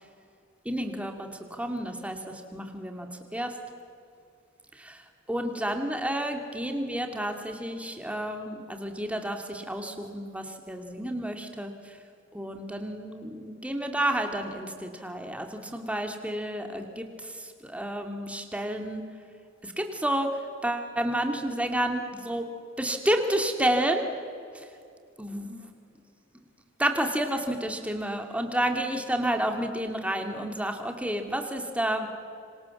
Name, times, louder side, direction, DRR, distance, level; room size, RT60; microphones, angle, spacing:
voice 1, 0.6-3.6 4.7-5.0 5.3-12.0 12.3-19.0 19.6-20.3 20.6-22.5 22.8-24.1 24.5-24.7 25.2-25.7 26.8-32.1, right 1 dB, 5° right, 5 dB, 2.4 m, -30 dB
26.5 x 26.0 x 7.3 m, 2.4 s
head